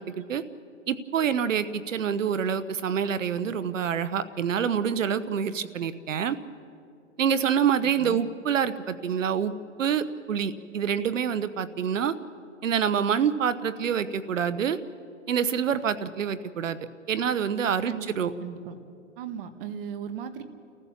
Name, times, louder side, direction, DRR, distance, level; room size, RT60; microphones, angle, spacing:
voice 1, 0.9-6.4 7.2-9.5 9.8-12.1 12.6-14.8 15.3-16.8 17.1-18.3, right 8 dB, 85° right, 14 dB, 1.1 m, -26 dB
voice 2, 7.8-8.3 17.8-18.8 19.2-20.4, right 8 dB, 45° right, 10 dB, 1.6 m, -37 dB
29.5 x 15.0 x 7.2 m, 2.6 s
hypercardioid pair, 140°, 37 cm